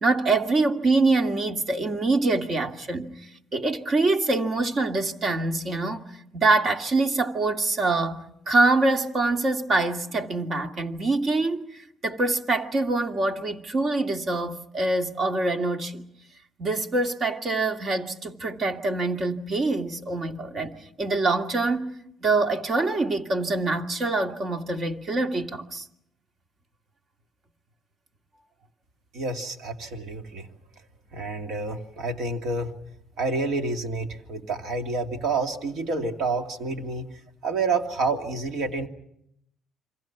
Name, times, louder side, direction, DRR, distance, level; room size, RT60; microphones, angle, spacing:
voice 1, 0.0-6.0 6.3-16.0 16.6-25.9, right 3 dB, 50° right, 2.2 m, -25 dB
voice 2, 29.1-30.5 31.1-32.7 33.2-37.1 37.4-38.9, right 3 dB, 75° right, 2.7 m, -28 dB
28.5 x 25.5 x 6.1 m
cardioid pair, 80°, 0 cm